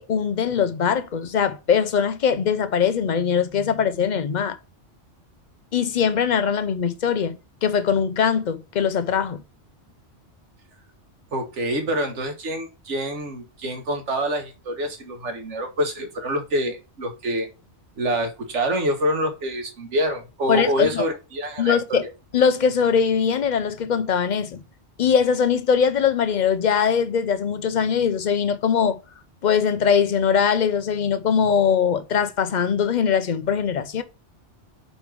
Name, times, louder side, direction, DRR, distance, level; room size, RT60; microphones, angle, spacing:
voice 1, 0.0-4.6 5.7-9.4 20.5-21.0 21.6-22.1 22.3-24.6 25.0-29.0 29.4-34.0, left 7 dB, 50° left, 0.7 m, -21 dB
voice 2, 11.3-17.5 18.0-22.0, equal, 85° right, 1.6 m, -26 dB
5.3 x 4.2 x 4.5 m
omnidirectional pair, 1.2 m